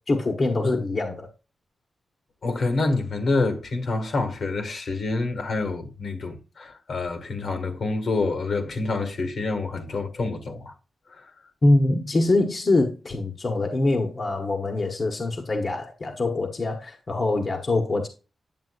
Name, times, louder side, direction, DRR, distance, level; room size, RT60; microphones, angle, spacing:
voice 1, 0.1-1.3 11.6-18.1, left 2 dB, 45° left, 1.2 m, -24 dB
voice 2, 2.4-10.7, left 3 dB, 70° left, 1.6 m, -27 dB
9.3 x 7.3 x 2.4 m
wide cardioid pair, 90°, 0 cm